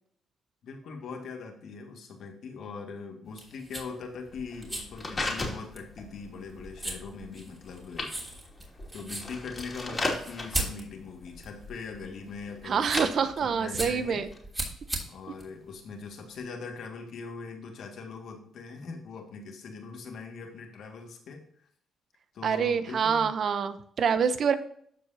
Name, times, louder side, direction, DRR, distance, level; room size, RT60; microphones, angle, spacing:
voice 1, 0.6-8.4 8.9-14.3 15.0-21.7 22.3-23.3, left 4 dB, 70° left, 3 dB, 2.0 m, -41 dB
sound 1, 3.3-16.4, right 1 dB, 15° right, 3.1 m, -39 dB
sound 2, 4.3-14.4, left 2 dB, 30° left, 2.6 m, -38 dB
voice 2, 12.6-14.3 22.4-24.5, right 6 dB, 55° right, 11 dB, 0.8 m, -26 dB
13.5 x 4.8 x 2.8 m, 0.64 s
cardioid pair, 90°, 0 cm